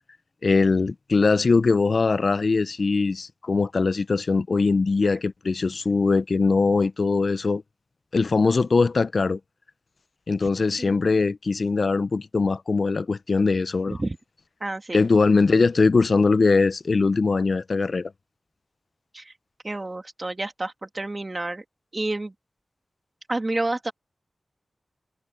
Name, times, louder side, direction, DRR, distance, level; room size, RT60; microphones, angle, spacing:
voice 1, 0.4-7.6 8.1-9.4 10.3-14.0 14.9-18.1, left 4 dB, 65° left, 0.5 m, -21 dB
voice 2, 14.6-15.0 19.1-19.3 19.6-21.6 21.9-22.3 23.3-23.9, right 2 dB, 35° right, 2.5 m, -29 dB
cardioid pair, 60°, 0 cm